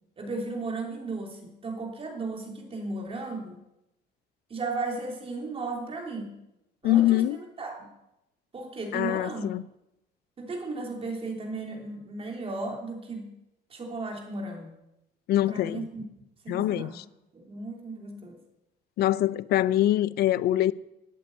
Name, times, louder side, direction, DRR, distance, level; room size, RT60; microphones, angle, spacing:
voice 1, 0.2-3.6 4.5-6.3 6.8-7.9 8.5-9.5 10.4-13.3 13.7-14.7 15.5-16.0 16.4-17.0 17.3-18.4, right 3 dB, 35° right, 3.2 m, -35 dB
voice 2, 6.8-7.4 8.9-9.6 15.3-15.9 16.5-17.0 19.0-20.7, left 13 dB, 70° left, 0.5 m, -24 dB
12.5 x 8.5 x 8.5 m
cardioid pair, 110°, 17 cm